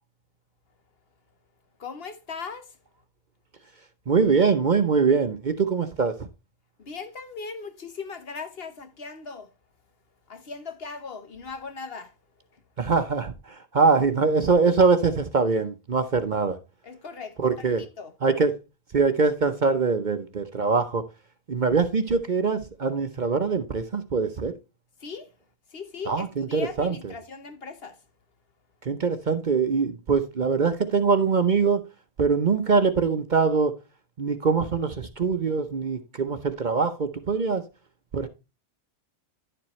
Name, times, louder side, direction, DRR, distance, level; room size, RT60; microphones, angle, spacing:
voice 1, 1.8-2.8 6.8-9.5 10.3-12.1 12.5-12.6 16.8-18.1 25.0-25.3 25.7-28.0, left 5 dB, 55° left, 1.2 m, -39 dB
voice 2, 4.1-6.3 12.8-16.6 17.4-17.8 18.2-18.5 18.9-21.0 21.5-24.5 26.1-27.1 28.8-31.8 32.2-33.7 34.2-37.6 38.1-38.3, right 4 dB, 45° right, 0.8 m, -23 dB
11.0 x 7.3 x 3.1 m
omnidirectional pair, 1.3 m